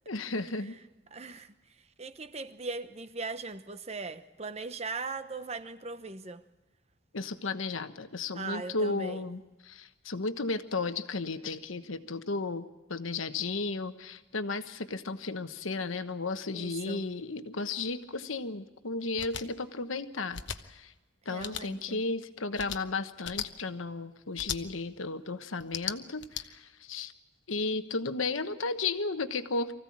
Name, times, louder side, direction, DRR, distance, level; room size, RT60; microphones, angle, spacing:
voice 1, 0.1-0.7 7.1-20.9 21.2-27.1 27.5-29.7, left 3 dB, 90° left, 1.2 m, -34 dB
voice 2, 1.1-1.5 2.0-6.4 8.3-9.2 16.5-17.1 21.3-22.0, right 3 dB, 30° right, 0.9 m, -39 dB
sound 1, 19.2-19.4 20.3-20.6 21.4-21.6 22.5-22.8 23.2-23.5 24.4-24.6 25.6-26.4, left 10 dB, 65° left, 1.0 m, -36 dB
24.0 x 15.5 x 8.6 m
head